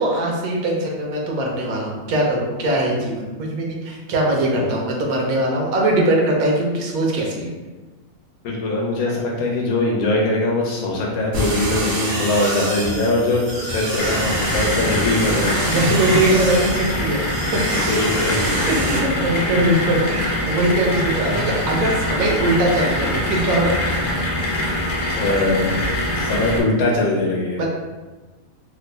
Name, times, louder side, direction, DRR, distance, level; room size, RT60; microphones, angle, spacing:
voice 1, 0.0-7.5 15.6-17.3 17.7-17.8 18.7-23.7 27.6-27.7, right 1 dB, 90° right, -1 dB, 1.2 m, -21 dB
voice 2, 8.4-15.6 17.7-19.9 25.1-25.7 26.2-27.7, left 2 dB, 85° left, -2 dB, 1.2 m, -22 dB
sound 1, 11.3-19.0, right 1 dB, 65° right, 1.1 m, -27 dB
sound 2, 14.0-26.6, left 1 dB, 60° left, 0.5 m, -24 dB
3.3 x 2.1 x 3.2 m, 1.2 s
omnidirectional pair, 1.5 m